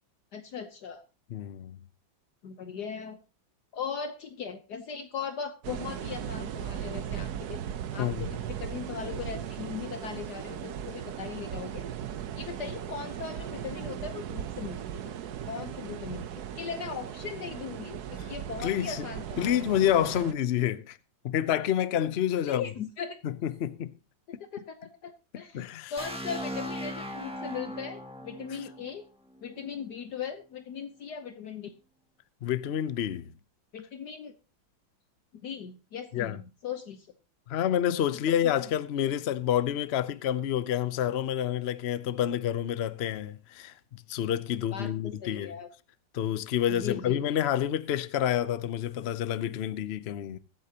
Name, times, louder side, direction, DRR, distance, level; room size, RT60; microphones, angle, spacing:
voice 1, 0.3-1.0 2.4-3.2 3.7-7.6 7.9-11.9 12.4-15.1 15.5-19.7 22.4-23.2 24.3-29.0 29.4-31.7 33.7-34.3 35.4-37.1 38.4-38.7 44.7-45.7 46.7-47.2, left 6 dB, 60° left, 1.4 m, -39 dB
voice 2, 1.3-1.8 8.0-8.3 18.6-19.0 19.4-21.0 21.2-22.7 23.2-24.0 25.5-25.9 32.4-33.3 36.1-36.4 37.5-43.7 44.1-45.5 46.1-50.4, left 10 dB, 90° left, 0.5 m, -28 dB
sound 1, 5.6-20.3, right 9 dB, 60° right, 1.2 m, -37 dB
sound 2, 26.0-29.8, equal, 5° right, 1.8 m, -39 dB
22.0 x 8.4 x 2.9 m
omnidirectional pair, 2.1 m